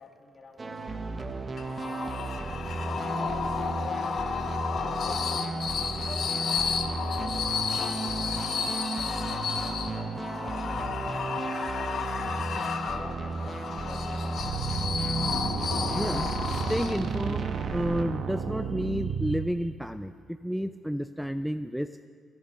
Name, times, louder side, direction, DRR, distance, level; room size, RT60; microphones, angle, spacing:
voice 1, 0.0-2.4 3.1-4.1 4.7-11.6 12.2-14.7, left 3 dB, 35° left, 3 dB, 2.3 m, -49 dB
sound 1, 0.6-18.0, right 3 dB, 30° right, 1.1 m, -34 dB
sound 2, 1.6-17.3, left 6 dB, 55° left, 1.1 m, -32 dB
sound 3, 14.4-19.5, right 6 dB, 65° right, 1.3 m, -33 dB
voice 2, 16.0-21.9, equal, ahead, 11 dB, 0.4 m, -31 dB
23.0 x 9.6 x 5.9 m, 2.3 s
cardioid pair, 90°, 0 cm